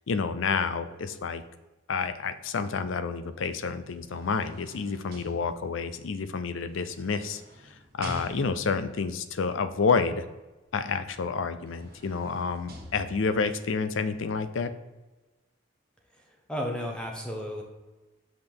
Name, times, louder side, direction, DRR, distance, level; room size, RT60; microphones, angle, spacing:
voice 1, 0.1-1.4 1.9-7.4 7.9-10.3 10.7-14.7, left 5 dB, 75° left, 12 dB, 0.5 m, -29 dB
sound 1, 3.9-6.0 6.8-8.8 11.0-11.1 11.5-13.5 14.1-14.2, right 1 dB, 50° right, 1.4 m, -46 dB
voice 2, 16.5-17.6, equal, 5° left, 0 dB, 0.7 m, -33 dB
6.0 x 5.5 x 3.5 m, 1.1 s
head